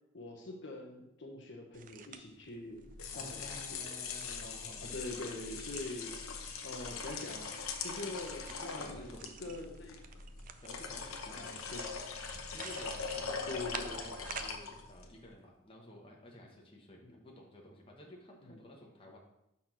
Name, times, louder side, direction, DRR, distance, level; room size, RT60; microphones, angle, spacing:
voice 1, 0.1-3.8 4.4-6.2 6.6-10.2 11.3-11.9 13.5-14.0 17.0-17.2 18.4-18.5, left 2 dB, 55° left, 1 dB, 1.0 m, -44 dB
sound 1, 1.7-14.6, right 6 dB, 40° right, 0.4 m, -52 dB
sound 2, 2.8-15.1, left 5 dB, 85° left, 0.9 m, -42 dB
voice 2, 3.1-4.9 8.4-9.3 10.6-12.0 12.5-19.2, left 1 dB, 25° left, -2 dB, 1.1 m, -53 dB
5.9 x 4.2 x 6.1 m, 0.85 s
head